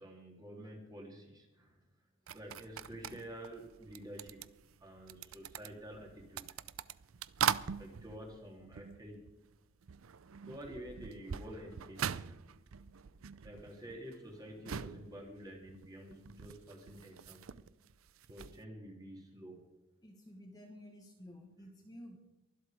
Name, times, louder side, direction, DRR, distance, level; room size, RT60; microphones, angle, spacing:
voice 1, 0.0-1.8 2.3-4.4 4.8-6.6 7.8-9.2 10.4-12.3 13.4-17.5 18.3-19.6, equal, 20° right, 0 dB, 3.2 m, -49 dB
sound 1, 2.3-9.6 9.8-18.6, right 8 dB, 75° right, 0.5 m, -42 dB
voice 2, 20.0-22.2, equal, 20° left, 1 dB, 1.5 m, -52 dB
23.5 x 8.0 x 5.0 m, 0.97 s
head